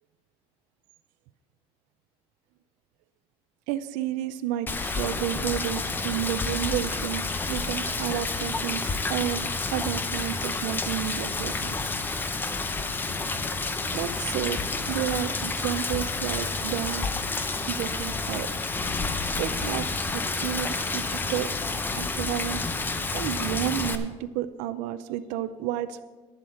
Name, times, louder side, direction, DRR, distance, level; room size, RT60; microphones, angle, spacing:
voice 1, 3.7-11.7 13.9-17.1 17.7-18.5 19.4-21.5 21.9-22.6 23.1-26.0, right 12 dB, 85° right, 11 dB, 0.5 m, -31 dB
Rain, 4.7-24.0, left 3 dB, 15° left, 0.6 m, -29 dB
sound 1, 14.6-22.1, right 2 dB, 10° right, 1.5 m, -50 dB
10.5 x 7.8 x 6.3 m, 1.3 s
cardioid pair, 150°, 12 cm